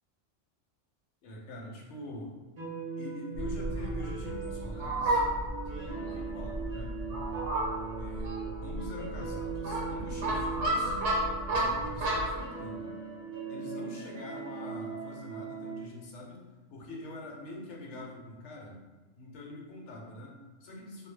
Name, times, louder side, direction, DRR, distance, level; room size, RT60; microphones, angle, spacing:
voice 1, 1.2-2.3 3.0-5.3 5.6-6.9 8.0-11.0 11.5-12.9 13.5-16.4 16.7-18.8 19.2-21.1, left 1 dB, 70° left, -1 dB, 0.9 m, -44 dB
sound 1, 2.6-15.8, right 5 dB, 35° right, 0.4 m, -40 dB
Fowl, 3.3-12.4, right 1 dB, 85° right, 1.0 m, -32 dB
2.2 x 2.1 x 3.1 m, 1.3 s
omnidirectional pair, 1.3 m